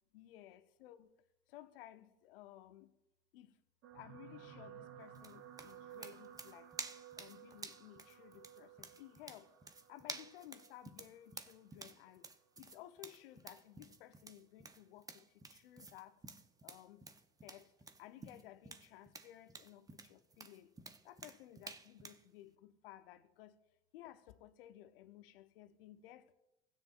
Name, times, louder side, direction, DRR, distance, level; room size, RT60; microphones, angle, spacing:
voice 1, 0.1-1.1 1.5-2.9 3.3-3.6 3.9-6.7 7.2-9.5 9.9-12.3 12.6-16.2 16.6-17.1 17.4-17.7 18.0-20.7 21.0-23.6 23.9-26.3, left 13 dB, 75° left, 0.8 m, -57 dB
sound 1, 3.8-12.3 13.0-13.3 13.6-13.7, right 9 dB, 50° right, 1.1 m, -57 dB
sound 2, 5.2-22.2, right 3 dB, 10° right, 0.7 m, -52 dB
16.0 x 9.4 x 2.5 m
hypercardioid pair, 85°, 29 cm